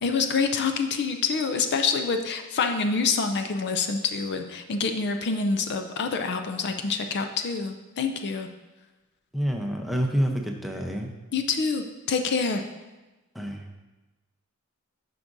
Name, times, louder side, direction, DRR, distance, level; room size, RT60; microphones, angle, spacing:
voice 1, 0.0-8.5 11.3-12.6, left 5 dB, 50° left, 6 dB, 0.4 m, -26 dB
voice 2, 9.3-11.1 13.3-13.8, equal, ahead, 1 dB, 0.7 m, -28 dB
9.8 x 6.0 x 2.6 m, 1.1 s
head